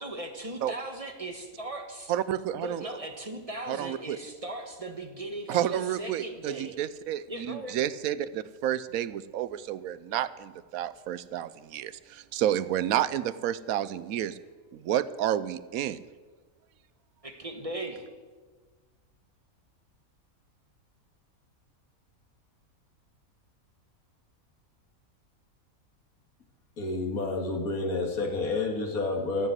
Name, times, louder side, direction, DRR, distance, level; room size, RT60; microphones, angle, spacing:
voice 1, 0.0-2.1 2.6-6.7 7.3-7.8 17.2-18.1, right 1 dB, 25° right, 4 dB, 1.5 m, -38 dB
voice 2, 2.1-2.8 3.7-4.2 5.5-14.4 14.7-16.0, right 11 dB, 80° right, 15 dB, 1.1 m, -30 dB
voice 3, 26.8-29.5, left 3 dB, 85° left, 2 dB, 2.3 m, -29 dB
13.5 x 7.4 x 9.5 m, 1.4 s
omnidirectional pair, 1.5 m